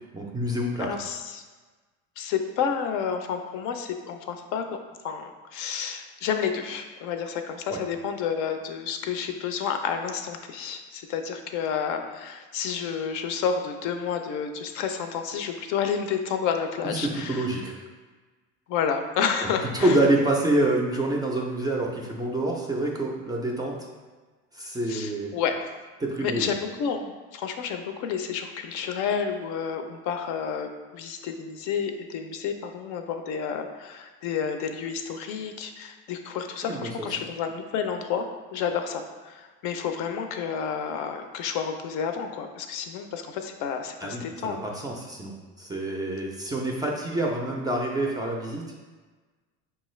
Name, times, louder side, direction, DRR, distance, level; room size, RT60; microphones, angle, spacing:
voice 1, 0.1-0.9 7.7-7.8 16.8-17.8 19.4-23.8 24.5-25.3 26.0-26.5 36.6-37.1 44.0-48.7, right 1 dB, 15° right, -1 dB, 0.3 m, -27 dB
voice 2, 0.8-1.4 2.2-4.7 5.0-17.4 18.7-20.0 24.9-25.6 26.2-44.6, left 7 dB, 65° left, 6 dB, 0.5 m, -30 dB
5.3 x 2.4 x 3.1 m, 1.3 s
cardioid pair, 135°, 32 cm